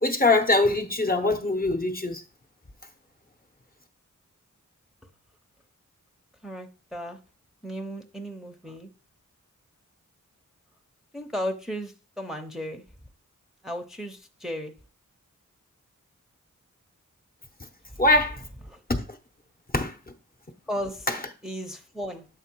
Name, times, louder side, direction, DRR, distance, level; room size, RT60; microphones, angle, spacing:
voice 1, 0.0-2.2 18.0-18.4 18.9-19.1 19.7-20.0 21.1-21.2, left 2 dB, 30° left, 0.8 m, -22 dB
voice 2, 6.4-7.2 7.6-8.9 11.1-12.8 13.6-14.7 18.7-18.8 20.7-21.1 21.4-22.3, equal, ahead, 0.7 m, -35 dB
7.3 x 3.2 x 4.5 m
wide cardioid pair, 60°, 32 cm